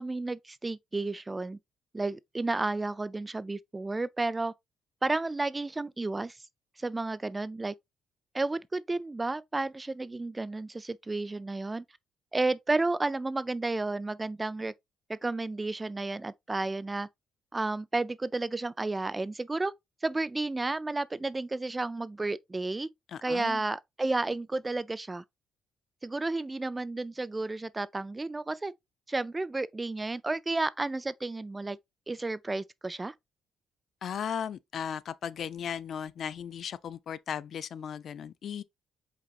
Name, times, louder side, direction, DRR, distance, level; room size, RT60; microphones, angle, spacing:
voice 1, 0.0-1.6 1.9-4.5 5.0-6.4 6.8-7.7 8.3-11.8 12.3-14.7 15.1-17.1 17.5-19.7 20.0-22.9 23.2-25.2 26.0-28.7 29.1-31.8 32.1-33.1, right 2 dB, 20° right, 0.3 m, -32 dB
voice 2, 23.1-23.6 34.0-38.6, left 8 dB, 60° left, 0.4 m, -36 dB
5.2 x 4.0 x 2.4 m
cardioid pair, 90°, 0 cm